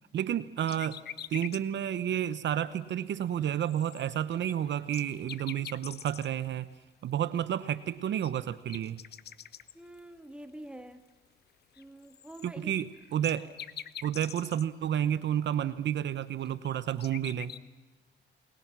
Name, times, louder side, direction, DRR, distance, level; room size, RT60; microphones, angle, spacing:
voice 1, 0.1-1.0 1.3-6.7 7.0-9.0 12.4-13.5 14.0-17.5, right 10 dB, 65° right, 14 dB, 1.0 m, -31 dB
sound 1, 0.7-1.6 2.0-2.1 2.7-2.8 3.1-3.2 3.4-6.4 7.7-7.8 8.0-10.0 10.4-10.5 11.7-14.7 15.1-15.2 15.5-15.6 16.2-17.6, left 9 dB, 55° left, 0.9 m, -45 dB
voice 2, 9.7-11.0 11.8-12.7, right 1 dB, 5° right, 7 dB, 2.0 m, -46 dB
29.5 x 21.5 x 6.1 m, 1.2 s
cardioid pair, 90°, 20 cm